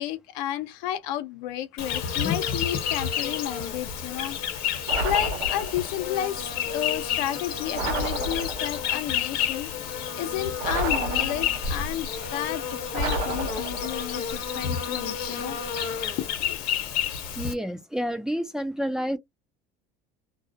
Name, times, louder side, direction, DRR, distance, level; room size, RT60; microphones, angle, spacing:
voice 1, 0.0-4.4 5.0-15.6 16.2-16.6, left 12 dB, 80° left, 0.7 m, -32 dB
Insect, 1.8-17.5, left 8 dB, 60° left, 0.9 m, -30 dB
sound 1, 4.9-6.0 7.7-8.9 10.6-11.8 12.9-14.1, right 2 dB, 80° right, 0.8 m, -30 dB
voice 2, 17.4-19.2, equal, 5° right, 0.3 m, -29 dB
2.3 x 2.0 x 2.6 m
cardioid pair, 140°, 18 cm